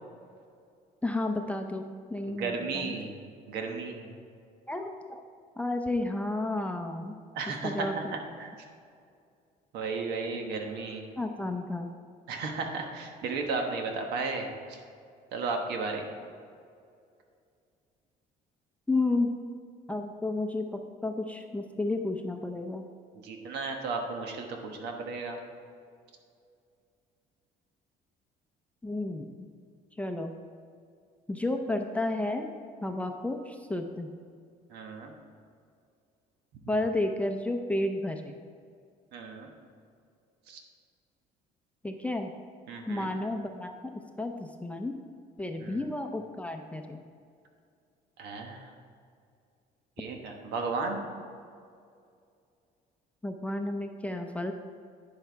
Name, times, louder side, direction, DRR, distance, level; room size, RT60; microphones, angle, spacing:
voice 1, 1.0-3.0 4.7-5.2 5.6-7.1 7.6-8.1 11.2-11.9 18.9-19.3 19.9-22.8 28.8-29.5 30.0-30.4 31.3-32.5 32.8-34.1 36.7-38.3 41.8-42.3 42.9-43.7 44.2-44.9 45.4-47.0 53.2-54.5, left 2 dB, 10° left, 4 dB, 0.6 m, -32 dB
voice 2, 2.3-3.1 3.5-4.1 7.3-8.5 9.7-11.0 12.3-14.8 15.3-16.1 23.1-25.4 34.7-35.1 39.1-39.5 40.5-40.6 42.7-43.1 45.6-45.9 48.2-48.7 50.0-51.0, right 4 dB, 80° right, 3 dB, 1.2 m, -34 dB
10.5 x 5.6 x 4.5 m, 2.3 s
cardioid pair, 110°, 17 cm